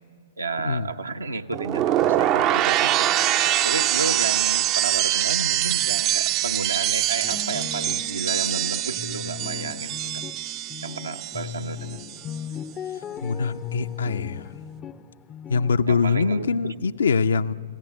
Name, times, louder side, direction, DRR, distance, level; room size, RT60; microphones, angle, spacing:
voice 1, 0.4-3.1 3.6-10.2 10.8-12.1 15.9-16.7, right 3 dB, 75° right, 7 dB, 1.0 m, -32 dB
sound 1, 1.5-11.6 11.9-12.3, right 13 dB, 30° right, 0.5 m, -24 dB
sound 2, 7.2-16.5, left 9 dB, 20° left, 0.6 m, -38 dB
voice 2, 13.2-14.5 15.5-17.5, left 5 dB, 65° left, 11 dB, 0.6 m, -23 dB
30.0 x 17.5 x 7.9 m, 2.6 s
figure-of-eight pair, 110°, 0 cm